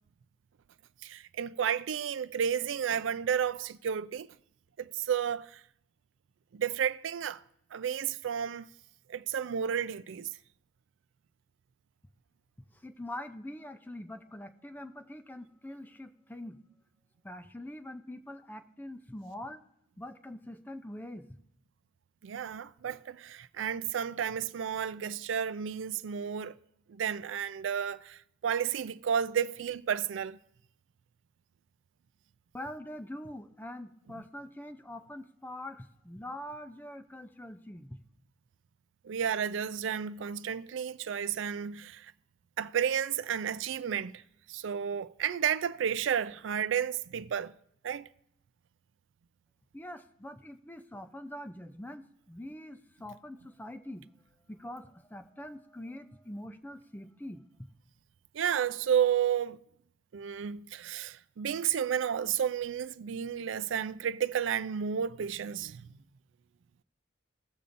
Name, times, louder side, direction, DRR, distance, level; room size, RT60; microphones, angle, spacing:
voice 1, 1.0-4.3 4.8-5.6 6.5-7.4 7.7-8.7 9.1-10.3 22.2-26.6 26.9-30.4 39.0-42.1 42.6-44.2 44.5-47.5 47.8-48.1 58.3-59.6 60.1-65.9, right 8 dB, 70° right, 0.4 m, -32 dB
voice 2, 12.8-16.6 17.2-19.6 20.0-21.3 32.5-37.9 49.7-54.0 54.5-57.4, left 1 dB, 10° left, 0.5 m, -44 dB
17.0 x 6.8 x 2.6 m
head